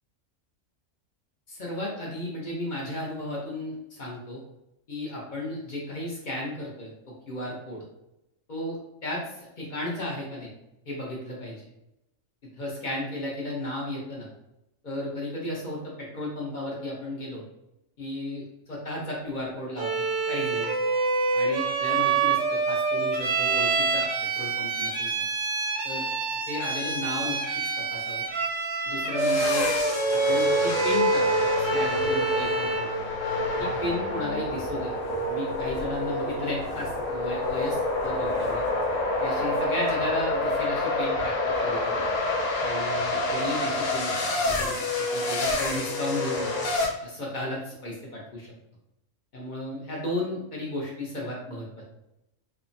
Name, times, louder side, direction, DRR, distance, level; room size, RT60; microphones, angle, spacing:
voice 1, 1.5-4.4 4.9-6.9 7.3-7.8 8.5-10.5 10.9-11.6 12.6-14.3 14.8-17.4 18.0-20.7 21.3-24.0 24.4-25.1 25.8-26.1 26.5-27.4 27.9-28.3 28.9-29.7 30.1-31.2 31.6-32.9 33.6-34.9 35.3-38.6 39.2-42.0 42.6-44.2 44.6-44.8 45.1-46.5 47.0-48.5 49.3-51.9, left 1 dB, 50° left, -3 dB, 0.7 m, -34 dB
Bowed string instrument, 19.8-32.9, right 4 dB, 70° right, 0.9 m, -26 dB
sound 1, 29.2-46.9, left 2 dB, 85° left, 1.1 m, -27 dB
3.2 x 2.0 x 2.5 m, 0.87 s
omnidirectional pair, 1.3 m